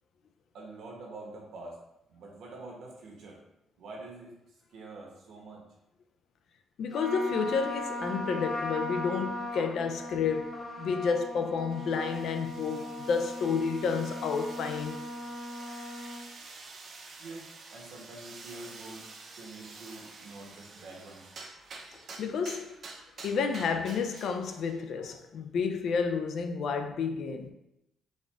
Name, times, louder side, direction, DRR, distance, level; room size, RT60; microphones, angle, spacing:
voice 1, 0.5-1.8 2.1-3.4 3.8-4.3 4.7-5.6 17.2-21.2, right 2 dB, 75° right, 1.1 m, -46 dB
voice 2, 6.8-15.0 22.2-22.8 23.2-27.5, left 5 dB, 70° left, 0.3 m, -30 dB
Trumpet, 6.9-16.2, left 1 dB, 45° left, 1.3 m, -38 dB
sound 1, 11.7-24.8, right 3 dB, 50° right, 0.5 m, -49 dB
4.2 x 2.4 x 3.3 m
cardioid pair, 90°, 0 cm